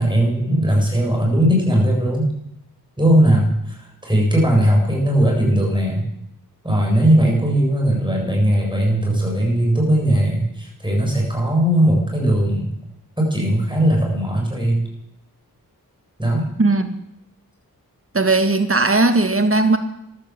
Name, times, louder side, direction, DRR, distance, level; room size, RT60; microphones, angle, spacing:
voice 1, 0.0-2.3 3.0-6.1 6.6-12.7 13.2-14.8 16.2-16.5, right 1 dB, 10° right, -1 dB, 7.5 m, -18 dB
voice 2, 18.1-19.8, right 2 dB, 35° right, 8 dB, 1.8 m, -17 dB
14.5 x 12.0 x 7.6 m, 0.81 s
wide cardioid pair, 45°, 37 cm